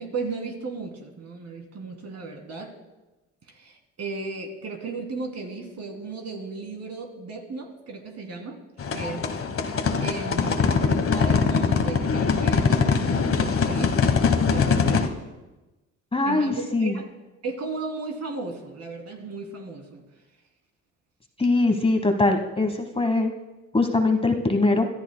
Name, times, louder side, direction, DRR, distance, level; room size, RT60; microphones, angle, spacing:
voice 1, 0.0-2.7 3.5-8.6 8.9-9.3 10.0-13.9 14.5-15.1 16.2-17.1 17.4-20.0, right 3 dB, 55° right, 2 dB, 2.9 m, -35 dB
sound 1, 8.8-15.1, left 5 dB, 45° left, 1.2 m, -22 dB
voice 2, 16.1-17.0 21.4-23.3 23.7-24.9, left 2 dB, 20° left, 5 dB, 1.2 m, -22 dB
24.5 x 13.0 x 2.2 m, 1.1 s
cardioid pair, 90°, 30 cm